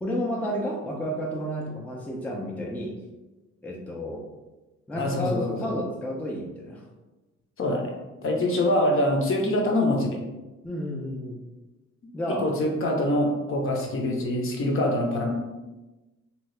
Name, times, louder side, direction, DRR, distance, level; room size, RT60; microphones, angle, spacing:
voice 1, 0.0-2.9 3.6-4.2 4.9-6.8 10.6-11.4 12.1-12.5, equal, 5° left, -2 dB, 0.4 m, -31 dB
voice 2, 5.0-5.7 7.6-8.0 8.2-10.2 12.4-15.3, left 1 dB, 45° left, 1 dB, 0.6 m, -24 dB
2.7 x 2.3 x 3.1 m, 1.1 s
cardioid pair, 90°, 30 cm